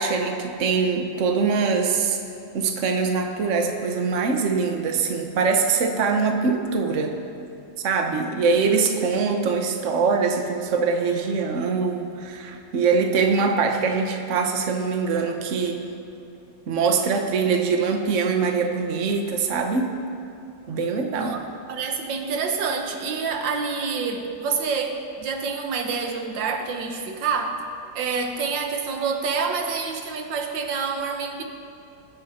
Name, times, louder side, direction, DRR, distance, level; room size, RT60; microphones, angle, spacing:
voice 1, 0.0-2.2 2.5-7.2 7.8-15.8 16.7-19.9 20.7-21.4, right 5 dB, 50° right, 4 dB, 1.3 m, -23 dB
voice 2, 21.1-21.4 21.7-27.6 27.9-31.4, right 5 dB, 90° right, 4 dB, 1.8 m, -27 dB
20.5 x 8.7 x 4.3 m, 2.7 s
omnidirectional pair, 1.9 m